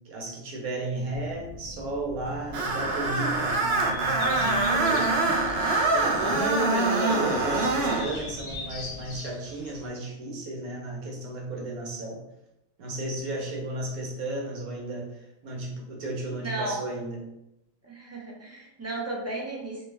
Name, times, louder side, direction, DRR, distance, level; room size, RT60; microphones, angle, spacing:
voice 1, 0.0-5.1 5.9-12.2 12.8-15.1 15.4-17.2, right 2 dB, 85° right, -1 dB, 1.4 m, -33 dB
Telephone, 1.1-9.2, right 1 dB, 85° left, 0.3 m, -38 dB
Screech, 2.5-8.1, right 3 dB, 60° right, 0.7 m, -25 dB
sound 1, 3.4-9.9, left 2 dB, 60° left, 1.0 m, -42 dB
voice 2, 16.4-16.8 17.8-19.9, right 2 dB, 20° right, -4 dB, 0.4 m, -34 dB
3.2 x 2.9 x 3.3 m, 0.88 s
omnidirectional pair, 1.5 m